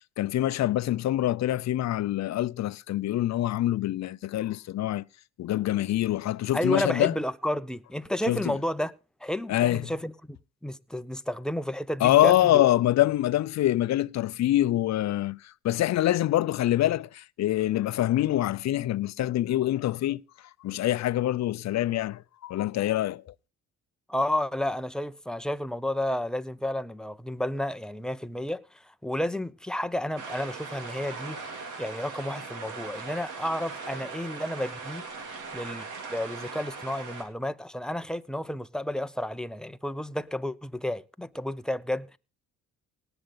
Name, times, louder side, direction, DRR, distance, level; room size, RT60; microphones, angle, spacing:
voice 1, 0.2-5.0 5.4-7.1 8.3-8.6 9.5-9.8 12.0-20.2 20.6-23.3, left 14 dB, 60° left, 0.6 m, -25 dB
voice 2, 6.5-8.9 9.2-10.4 10.6-12.6 24.1-31.4 31.8-35.0 35.5-42.2, left 1 dB, ahead, 0.8 m, -31 dB
sound 1, 30.2-37.2, right 4 dB, 80° right, 3.8 m, -39 dB
18.5 x 7.9 x 4.0 m
cardioid pair, 90°, 30 cm